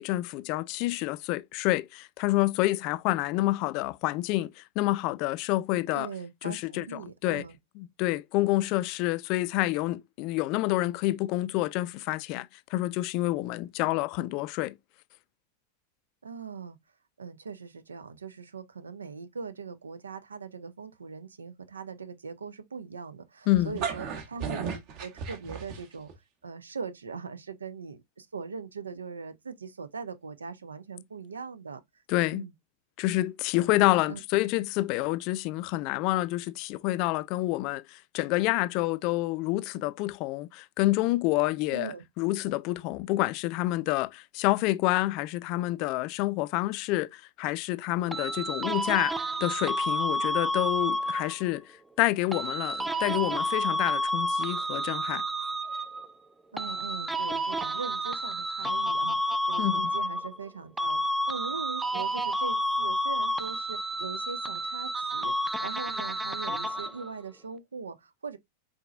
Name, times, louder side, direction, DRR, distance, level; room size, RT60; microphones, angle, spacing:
voice 1, 0.0-6.1 6.4-7.4 7.8-14.8 23.5-23.8 32.1-32.5 33.0-51.7 52.0-55.2 59.6-59.9, left 18 dB, 45° left, 0.4 m, -28 dB
voice 2, 5.9-7.6 13.8-13.9 16.2-16.8 17.2-26.1 26.4-31.8 32.3-32.5 34.1-34.2 41.7-42.0 56.5-68.4, right 5 dB, 75° right, 0.7 m, -41 dB
sound 1, 23.5-26.1, right 6 dB, 40° right, 1.3 m, -35 dB
sound 2, 48.1-51.5 52.3-56.1 56.6-60.5 60.8-67.1, equal, 5° right, 0.6 m, -30 dB
4.7 x 4.4 x 2.5 m
figure-of-eight pair, 90°, 0 cm